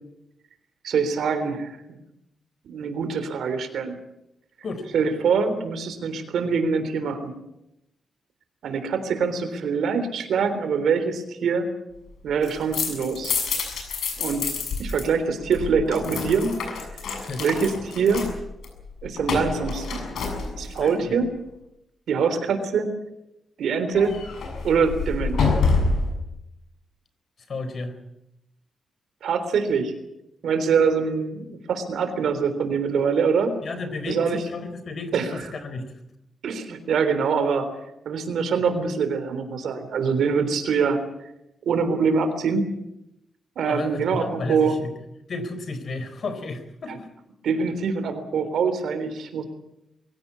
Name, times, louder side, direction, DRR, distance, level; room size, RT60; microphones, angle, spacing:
voice 1, 0.8-2.0 2.6-4.0 4.9-7.4 8.6-11.7 12.2-13.4 14.2-14.5 14.8-16.5 17.4-18.3 19.0-20.1 20.5-21.4 22.1-22.9 23.6-24.2 24.6-25.5 29.2-29.9 30.4-33.5 34.1-34.4 35.1-35.5 36.4-37.7 38.1-41.0 41.7-42.7 43.6-44.8 46.9-47.0 47.4-49.4, right 5 dB, 90° right, 9 dB, 3.6 m, -24 dB
sound 1, 12.3-15.0 15.3-20.9 23.9-26.2, left 4 dB, 90° left, 6.9 m, -27 dB
voice 2, 20.8-21.2 27.5-27.9 33.6-35.9 43.7-44.9 45.3-47.1, left 3 dB, 55° left, 11 dB, 4.0 m, -32 dB
22.5 x 17.0 x 8.6 m, 0.88 s
wide cardioid pair, 115°, 0 cm